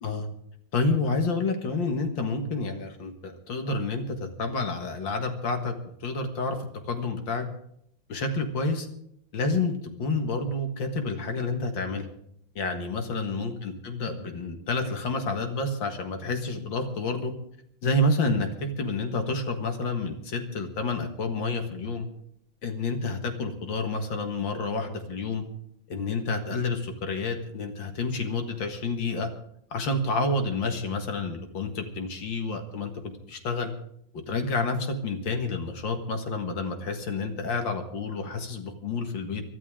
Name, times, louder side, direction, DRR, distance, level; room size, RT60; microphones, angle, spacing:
voice 1, 0.7-5.7 6.0-6.6 6.9-7.5 8.1-8.9 9.3-9.7 10.0-12.1 12.6-17.3 17.8-22.1 22.6-25.4 25.9-29.3 29.7-32.9 33.3-33.7 34.3-39.4, left 3 dB, 65° left, 6 dB, 2.4 m, -29 dB
23.5 x 12.5 x 3.7 m, 0.71 s
omnidirectional pair, 2.2 m